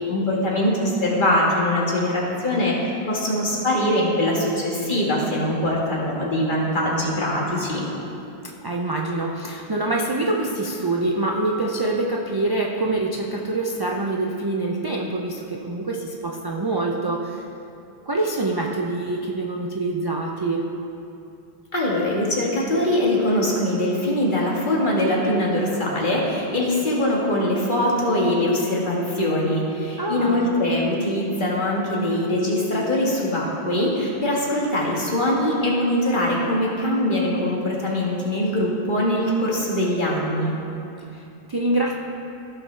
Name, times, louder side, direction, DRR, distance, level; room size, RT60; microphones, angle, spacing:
voice 1, 0.1-7.8 21.7-40.5, left 1 dB, 50° left, -4 dB, 1.7 m, -22 dB
voice 2, 8.4-17.4 18.1-20.7 30.0-30.6 41.1-41.9, right 2 dB, 35° right, -1 dB, 0.4 m, -25 dB
15.5 x 5.7 x 3.2 m, 2.7 s
omnidirectional pair, 1.1 m